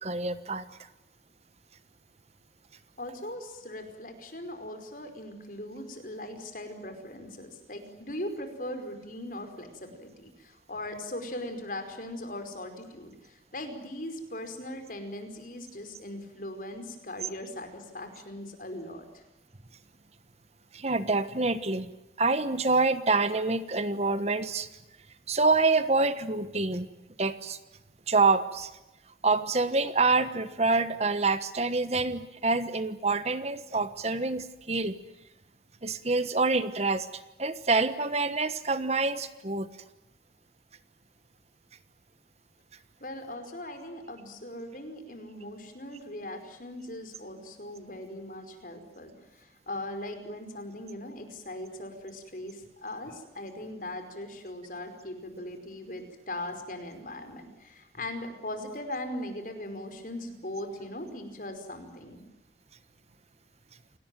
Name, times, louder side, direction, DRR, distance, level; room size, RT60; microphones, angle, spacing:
voice 1, 0.0-0.7 20.7-21.9 22.2-24.7 25.3-26.9 27.2-27.6 28.1-28.7 29.2-34.9 35.8-37.1 37.4-39.7, right 3 dB, 35° right, 12 dB, 1.2 m, -26 dB
voice 2, 3.0-19.2 43.0-62.2, left 1 dB, 50° left, 7 dB, 5.0 m, -39 dB
28.5 x 18.5 x 9.2 m, 0.95 s
head